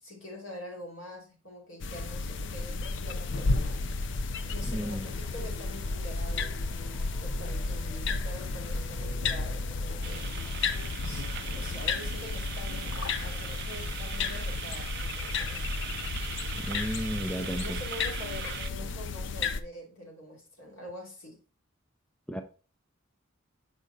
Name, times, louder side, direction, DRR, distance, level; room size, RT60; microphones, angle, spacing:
voice 1, 0.0-3.9 4.5-10.3 11.0-15.7 17.1-21.4, left 1 dB, 75° left, 2.7 m, -45 dB
sound 1, 1.8-19.6, left 4 dB, 60° left, 0.5 m, -33 dB
sound 2, 4.2-14.8, right 1 dB, 30° left, 3.4 m, -49 dB
voice 2, 4.6-5.1 16.5-17.8 22.3-22.4, equal, 5° left, 0.4 m, -33 dB
sound 3, 10.0-18.7, right 10 dB, 55° right, 0.5 m, -41 dB
6.5 x 4.9 x 3.9 m
head